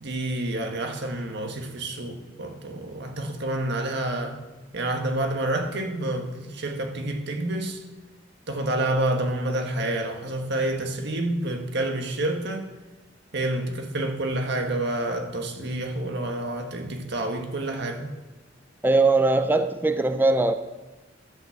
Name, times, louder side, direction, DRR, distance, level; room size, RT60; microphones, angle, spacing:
voice 1, 0.0-4.4 4.7-7.8 8.5-12.7 13.3-18.1, right 1 dB, 60° right, 1.6 m, -28 dB
voice 2, 18.8-20.5, right 2 dB, 10° right, 0.4 m, -20 dB
12.0 x 5.7 x 7.2 m
head